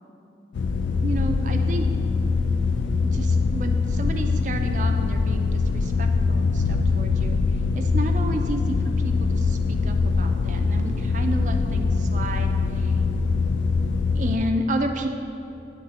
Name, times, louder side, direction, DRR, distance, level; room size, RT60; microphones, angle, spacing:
sound 1, 0.5-14.4, left 4 dB, 80° left, 0.3 m, -23 dB
voice 1, 1.0-1.9 3.0-7.4 7.8-13.0 14.1-15.1, right 1 dB, 40° right, 5 dB, 0.4 m, -31 dB
9.5 x 3.8 x 4.1 m, 2.9 s
head